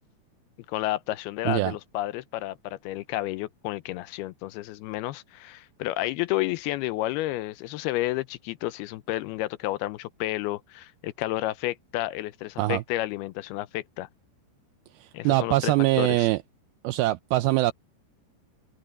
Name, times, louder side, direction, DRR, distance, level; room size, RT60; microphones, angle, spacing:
voice 1, 0.7-14.1 15.1-16.3, left 16 dB, 80° left, 2.5 m, -31 dB
voice 2, 15.0-16.4 16.8-17.7, right 17 dB, 85° right, 2.2 m, -23 dB
omnidirectional pair, 4.8 m